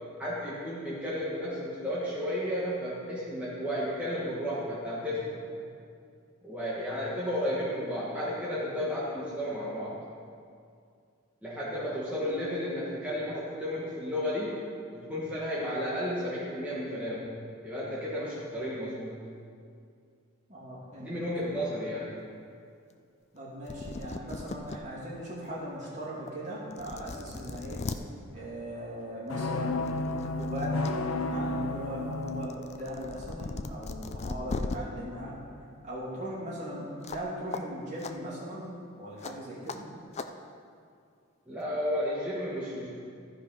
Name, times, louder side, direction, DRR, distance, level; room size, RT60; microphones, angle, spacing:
voice 1, 0.2-5.5 6.4-10.0 11.4-14.6 14.9-17.3 17.6-19.2 21.0-22.1 41.5-42.9, equal, 5° right, -9 dB, 1.4 m, -33 dB
voice 2, 20.5-21.1 21.4-21.6 23.3-27.9 28.3-35.4 35.8-38.7 39.0-39.8, equal, 35° right, -7 dB, 2.7 m, -39 dB
sound 1, 23.4-23.5 23.7-24.8 25.3-25.4 26.3-26.4 26.7-28.0 29.3-29.5 29.9-30.9 31.3-34.8 37.0-37.3 37.5-37.6 38.0-38.1 39.2-39.3 39.7-39.8 40.1-40.3, left 3 dB, 30° left, 0.4 m, -38 dB
sound 2, 29.3-32.5, left 2 dB, 85° left, 0.6 m, -31 dB
14.0 x 5.1 x 5.4 m, 2.3 s
head